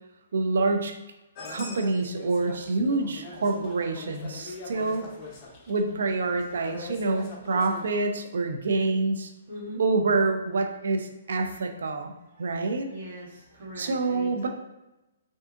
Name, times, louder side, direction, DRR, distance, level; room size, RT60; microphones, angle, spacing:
voice 1, 0.3-1.0 1.5-5.1 5.7-9.3 9.8-12.9 13.8-14.5, right 3 dB, 75° right, 5 dB, 0.4 m, -27 dB
sound 1, 1.3-7.9, left 3 dB, 30° left, 0.6 m, -43 dB
voice 2, 9.5-9.8 12.3-14.5, right 1 dB, 55° right, -5 dB, 1.4 m, -42 dB
3.5 x 2.6 x 2.4 m, 0.97 s
hypercardioid pair, 155°, 0 cm